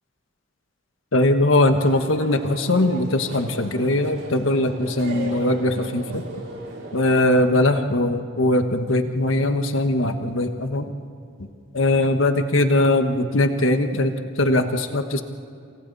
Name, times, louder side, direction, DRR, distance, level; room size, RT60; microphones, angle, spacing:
voice 1, 1.1-6.2 6.9-10.9 11.7-15.2, left 1 dB, 80° left, 7 dB, 1.4 m, -20 dB
sound 1, 1.8-7.3, right 2 dB, 85° right, 5.5 m, -37 dB
28.5 x 28.0 x 4.1 m, 2.4 s
head